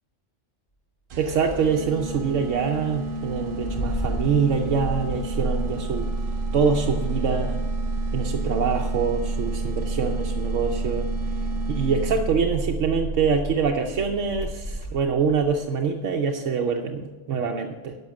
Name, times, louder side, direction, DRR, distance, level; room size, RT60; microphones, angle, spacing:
sound 1, 1.1-12.5, right 2 dB, 50° right, 0.8 m, -34 dB
voice 1, 1.2-6.1 6.5-7.6 8.1-11.1 11.7-18.0, right 5 dB, 80° right, 2 dB, 1.1 m, -25 dB
Engine starting, 1.5-15.5, right 2 dB, 65° left, 3.4 m, -30 dB
11.0 x 6.2 x 7.4 m, 1.2 s
omnidirectional pair, 1.3 m